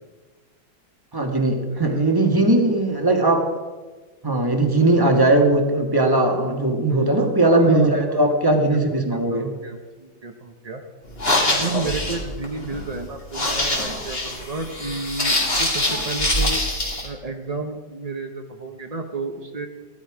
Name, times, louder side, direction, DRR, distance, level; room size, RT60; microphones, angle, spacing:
voice 1, 1.1-3.6 4.2-9.5, right 2 dB, 10° right, 3 dB, 1.5 m, -19 dB
voice 2, 6.9-8.2 8.7-10.8 11.4-16.6 17.0-19.7, right 3 dB, 50° right, 4 dB, 0.4 m, -32 dB
sound 1, 11.1-17.1, left 1 dB, 30° left, 2.6 m, -24 dB
16.0 x 12.5 x 4.9 m, 1.3 s
omnidirectional pair, 2.1 m